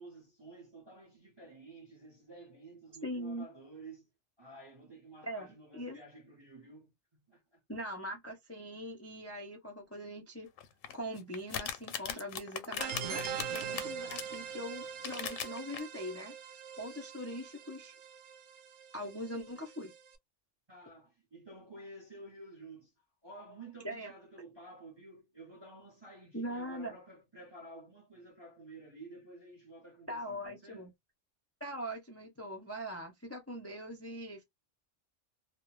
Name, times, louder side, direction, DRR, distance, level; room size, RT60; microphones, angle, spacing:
voice 1, 0.0-4.1 4.4-7.6 20.7-22.9 23.2-30.9, right 2 dB, 30° right, 0.6 m, -52 dB
voice 2, 3.0-3.4 5.2-6.0 7.7-10.5 10.9-16.4 16.8-17.9 18.9-19.9 23.8-24.1 26.3-26.9 30.1-30.9 31.6-34.4, equal, 20° left, 0.4 m, -41 dB
sound 1, 10.6-14.4 14.9-15.8, left 9 dB, 85° left, 1.0 m, -38 dB
sound 2, 12.8-20.1, right 7 dB, 70° right, 0.8 m, -42 dB
2.3 x 2.1 x 3.0 m
omnidirectional pair, 1.3 m